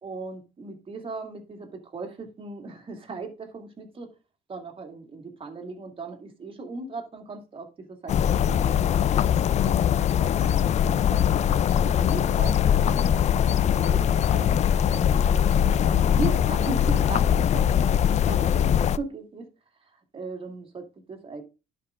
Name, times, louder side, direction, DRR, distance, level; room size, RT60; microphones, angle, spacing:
voice 1, 0.0-4.1 4.5-11.3 11.7-13.1 13.7-14.6 14.9-19.5 20.1-21.4, right 3 dB, 30° right, 2.4 m, -38 dB
sound 1, 8.1-19.0, left 9 dB, 40° left, 0.4 m, -22 dB
11.5 x 5.2 x 3.7 m
cardioid pair, 110°, 17 cm